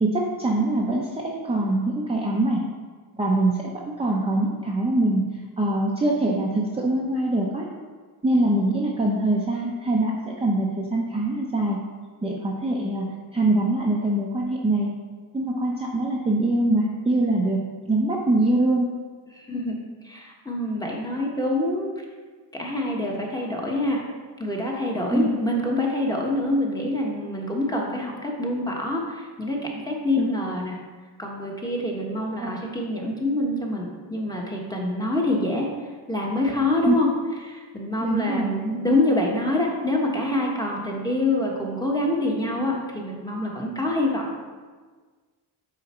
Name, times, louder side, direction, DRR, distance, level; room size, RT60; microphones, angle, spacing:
voice 1, 0.0-2.6 3.1-3.7 4.0-5.3 5.6-7.7 8.2-11.8 12.2-14.9 15.3-18.9 25.1-25.3 30.2-30.3 32.4-32.5 36.9-37.0 38.0-38.5, right 2 dB, 15° right, -3 dB, 0.7 m, -23 dB
voice 2, 19.3-19.7 20.0-21.9 22.5-24.0 24.4-30.8 31.2-35.7 36.1-37.1 37.4-44.2, left 1 dB, 10° left, -2 dB, 1.3 m, -26 dB
7.8 x 4.9 x 4.4 m, 1.5 s
cardioid pair, 125°, 44 cm